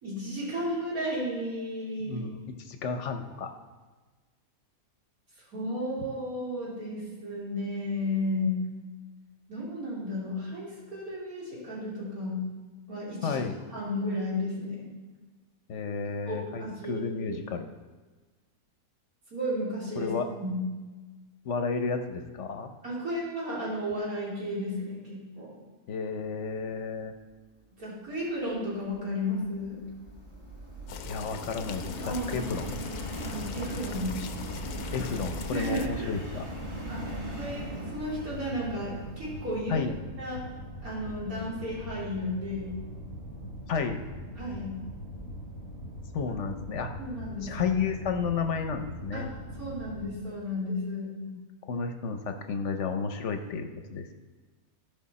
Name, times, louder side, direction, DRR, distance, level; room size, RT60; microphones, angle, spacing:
voice 1, 0.0-2.2 5.5-8.6 9.5-12.4 12.9-13.4 13.7-14.9 16.3-17.4 19.3-20.1 20.4-20.6 22.8-25.5 27.8-29.8 32.0-32.5 33.3-34.2 35.5-36.1 36.9-37.1 37.4-39.9 40.2-40.4 40.8-42.7 44.4-44.8 47.0-47.8 49.1-49.3 49.6-51.1, left 1 dB, 70° right, -7 dB, 3.4 m, -33 dB
voice 2, 2.0-3.5 13.2-13.5 15.7-17.7 20.0-20.3 21.4-22.7 25.9-27.1 31.1-32.0 32.3-32.8 34.9-36.5 39.7-39.9 43.7-44.0 46.1-46.9 47.4-49.3 51.3-51.4 51.7-54.1, left 5 dB, 55° left, 6 dB, 1.0 m, -32 dB
Subway metro underground, 28.7-40.0, equal, 20° right, 1.6 m, -40 dB
sound 1, 30.9-35.9, left 7 dB, 85° left, 1.2 m, -42 dB
sound 2, 32.5-50.1, equal, 55° right, 2.6 m, -42 dB
15.5 x 5.9 x 4.1 m, 1.3 s
omnidirectional pair, 1.6 m